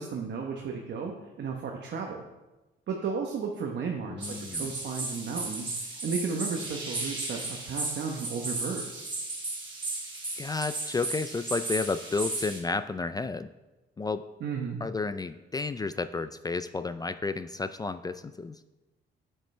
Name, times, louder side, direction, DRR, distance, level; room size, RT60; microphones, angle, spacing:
voice 1, 0.0-2.2 2.9-9.1 14.4-14.8, right 5 dB, 60° right, 1 dB, 1.0 m, -34 dB
voice 2, 4.1-4.7 10.4-13.5 14.0-14.3 14.8-18.6, left 3 dB, 20° left, 12 dB, 0.3 m, -32 dB
sound 1, 4.2-12.6, right 2 dB, 25° right, 1.8 m, -35 dB
9.0 x 7.8 x 3.3 m, 1.1 s
cardioid pair, 90°, 20 cm